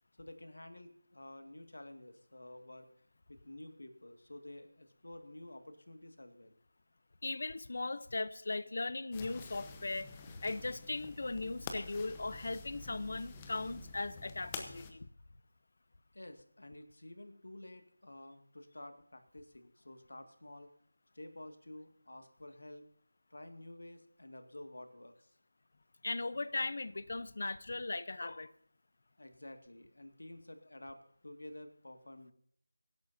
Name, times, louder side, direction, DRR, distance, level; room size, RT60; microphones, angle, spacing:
voice 1, 0.2-2.9 3.3-6.6 16.1-20.7 21.1-22.9 23.3-25.4 29.2-32.3, left 1 dB, 80° left, 7 dB, 1.9 m, -51 dB
voice 2, 7.2-15.1 26.0-28.5, left 3 dB, 55° left, 16 dB, 0.7 m, -38 dB
sound 1, 9.1-14.9, left 4 dB, 15° left, 0.9 m, -48 dB
23.0 x 11.5 x 2.7 m, 0.67 s
figure-of-eight pair, 170°, 0 cm